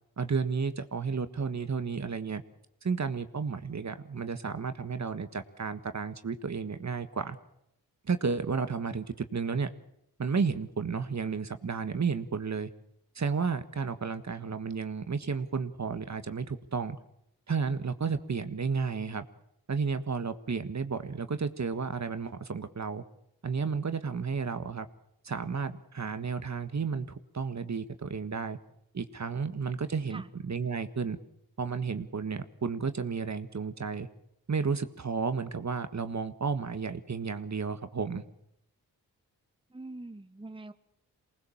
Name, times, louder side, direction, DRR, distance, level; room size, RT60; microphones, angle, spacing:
voice 1, 0.2-2.4 2.8-7.4 8.1-9.7 10.2-12.7 13.1-17.0 17.5-19.3 19.7-23.0 23.4-24.9 25.2-28.6 28.9-31.2 31.6-34.1 34.5-38.2, right 5 dB, 45° right, 10 dB, 1.6 m, -32 dB
voice 2, 39.7-40.7, right 2 dB, 15° right, 10 dB, 1.3 m, -43 dB
23.5 x 19.5 x 7.3 m, 0.76 s
cardioid pair, 45°, 38 cm